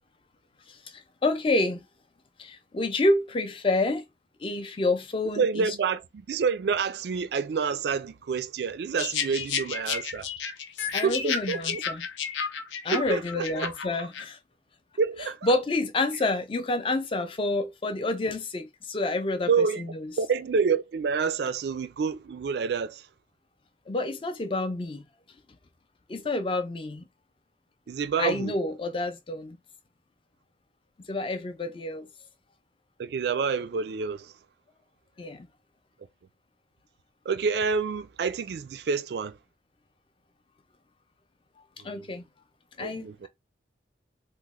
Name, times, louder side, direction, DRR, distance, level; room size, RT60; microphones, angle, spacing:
voice 1, 0.7-1.9 2.4-4.0 4.4-5.8 10.9-12.1 12.8-14.4 15.4-20.1 23.9-25.0 26.1-27.1 28.2-29.6 31.1-32.1 35.2-35.5 41.8-42.2 42.8-43.3, left 2 dB, 30° left, 0.4 m, -28 dB
voice 2, 5.4-10.3 11.0-11.8 12.9-13.7 15.0-15.4 19.5-19.8 20.2-23.1 27.9-28.5 33.0-34.3 37.3-39.4 41.9-42.0 42.8-43.3, right 5 dB, 60° right, 0.3 m, -28 dB
sound 1, 9.0-14.2, left 6 dB, 75° left, 0.6 m, -32 dB
3.0 x 2.0 x 3.5 m
head